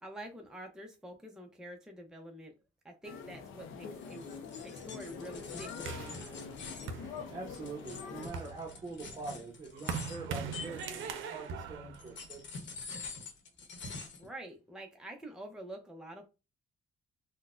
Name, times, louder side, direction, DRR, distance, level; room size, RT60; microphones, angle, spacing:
voice 1, 0.0-2.5 2.8-6.2 14.2-16.3, right 1 dB, 5° right, 0.7 m, -47 dB
sound 1, 3.0-8.3, left 6 dB, 90° left, 0.6 m, -45 dB
sound 2, 4.0-11.5 11.9-14.3, left 4 dB, 65° left, 1.0 m, -46 dB
sound 3, 5.8-7.7 8.1-12.8, right 6 dB, 80° right, 0.6 m, -41 dB
voice 2, 7.3-12.5, right 3 dB, 25° right, 0.9 m, -44 dB
3.9 x 2.2 x 2.5 m
cardioid pair, 90°, 20 cm